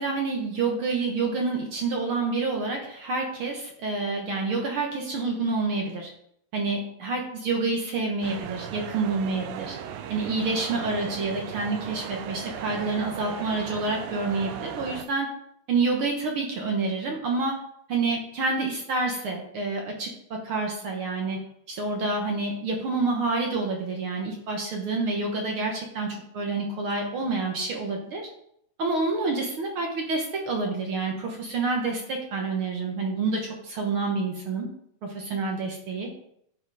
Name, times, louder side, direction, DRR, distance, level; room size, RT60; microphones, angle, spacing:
voice 1, 0.0-6.1 6.5-9.8 10.1-15.3 15.7-17.6 17.9-21.4 21.7-28.3 28.8-34.7 35.0-36.1, right 3 dB, 60° right, 1 dB, 1.5 m, -28 dB
sound 1, 8.2-15.1, right 9 dB, 80° right, 1.5 m, -37 dB
9.3 x 5.6 x 4.8 m, 0.72 s
omnidirectional pair, 3.6 m